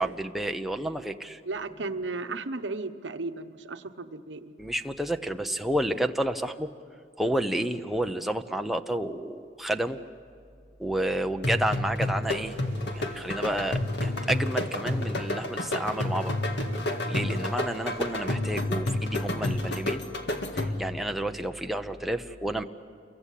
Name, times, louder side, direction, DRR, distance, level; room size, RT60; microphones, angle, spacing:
voice 1, 0.0-1.4 4.6-6.7 7.2-10.0 10.8-12.6 12.8-16.4 17.1-20.0 20.5-22.6, right 1 dB, ahead, 5 dB, 0.8 m, -30 dB
voice 2, 1.4-4.6, right 3 dB, 75° right, 7 dB, 1.1 m, -35 dB
sound 1, 11.4-21.0, left 1 dB, 65° left, 1.9 m, -30 dB
sound 2, 12.4-19.1, right 1 dB, 50° right, 4.3 m, -47 dB
28.5 x 23.5 x 8.5 m, 2.3 s
head